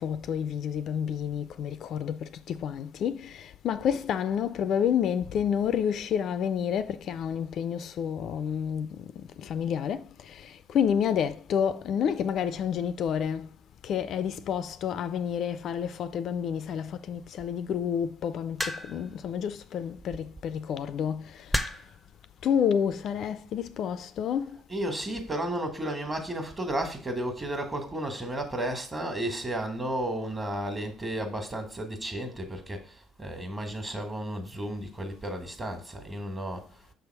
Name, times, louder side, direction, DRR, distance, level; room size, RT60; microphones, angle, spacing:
voice 1, 0.0-9.1 9.4-13.5 13.8-21.3 22.4-24.5, left 8 dB, 60° left, 0.4 m, -29 dB
sound 1, 18.6-19.1 20.3-20.6 21.5-22.0 23.0-23.3, equal, 5° right, 0.6 m, -31 dB
voice 2, 24.7-36.7, right 1 dB, 25° right, 1.5 m, -33 dB
6.0 x 3.4 x 4.6 m
supercardioid pair, 75°, 0 cm